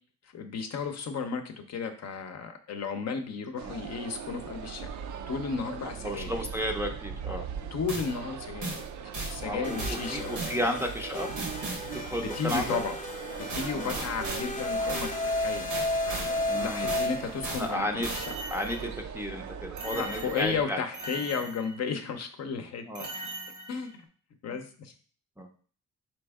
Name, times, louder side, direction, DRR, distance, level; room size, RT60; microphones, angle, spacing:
voice 1, 0.2-4.9 5.3-6.4 7.7-10.7 12.2-13.0 13.4-15.7 16.1-18.2 19.9-23.2 23.7-24.0 24.4-24.9, left 5 dB, 55° left, 6 dB, 0.7 m, -34 dB
sound 1, 3.6-20.6, right 7 dB, 65° right, 0.5 m, -40 dB
voice 2, 6.0-7.4 9.5-11.3 11.9-12.8 13.7-14.0 16.5-17.0 17.6-18.1 18.5-20.8 22.9-23.1 25.4-25.5, equal, 10° right, 1 dB, 0.5 m, -33 dB
sound 2, 7.9-8.1 8.6-8.8 9.1-9.4 9.8-10.0 10.3-10.6 11.4-11.9 12.5-12.7 13.5-14.5 14.9-15.1 15.7-16.3 16.9-17.1 17.4-17.7 18.0-19.0 19.8-20.5 20.9-21.9 23.0-23.9, right 2 dB, 90° right, 1.2 m, -37 dB
sound 3, 9.6-17.7, left 1 dB, 25° left, 0.9 m, -34 dB
4.3 x 2.9 x 3.5 m, 0.43 s
cardioid pair, 105°, 31 cm